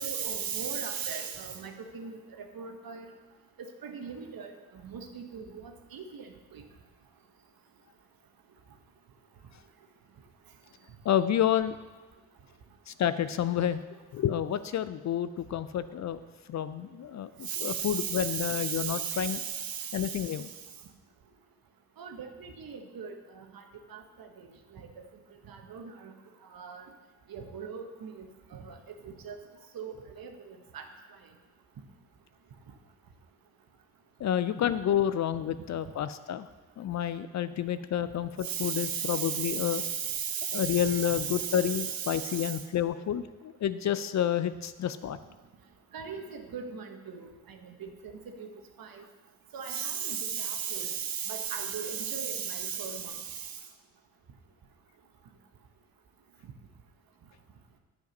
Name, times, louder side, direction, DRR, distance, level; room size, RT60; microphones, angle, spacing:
voice 1, 0.0-3.1 3.6-6.6 17.4-20.4 22.0-23.6 23.9-24.9 25.5-26.1 26.5-26.8 27.3-28.8 29.0-29.4 29.7-30.8 38.4-42.6 45.9-48.5 48.8-49.0 49.5-53.6, right 7 dB, 55° right, 5 dB, 1.3 m, -37 dB
voice 2, 11.0-11.8 12.9-13.8 14.1-16.2 16.5-19.4 19.9-20.5 34.2-36.5 36.8-39.8 40.5-45.2, left 10 dB, 45° left, 14 dB, 0.5 m, -29 dB
9.1 x 5.2 x 5.3 m, 1.2 s
hypercardioid pair, 40°, 42 cm